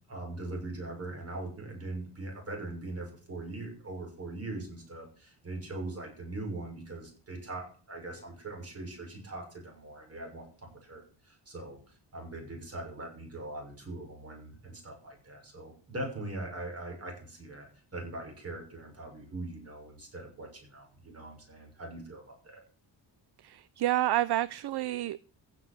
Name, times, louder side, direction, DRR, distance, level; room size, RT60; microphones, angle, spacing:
voice 1, 0.1-22.6, right 2 dB, 35° right, 6.4 m, -41 dB
voice 2, 23.4-25.4, right 14 dB, 65° right, 0.6 m, -29 dB
15.5 x 7.5 x 7.6 m
wide cardioid pair, 180°, 42 cm